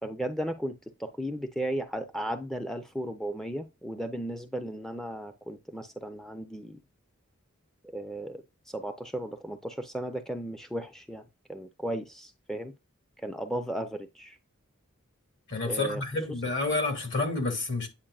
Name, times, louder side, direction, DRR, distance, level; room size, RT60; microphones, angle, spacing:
voice 1, 0.0-6.8 7.9-11.2 11.5-12.7 13.2-14.4 15.6-16.0, right 1 dB, ahead, 0.4 m, -35 dB
voice 2, 15.5-17.9, left 3 dB, 60° left, 2.1 m, -29 dB
8.7 x 4.7 x 2.3 m
head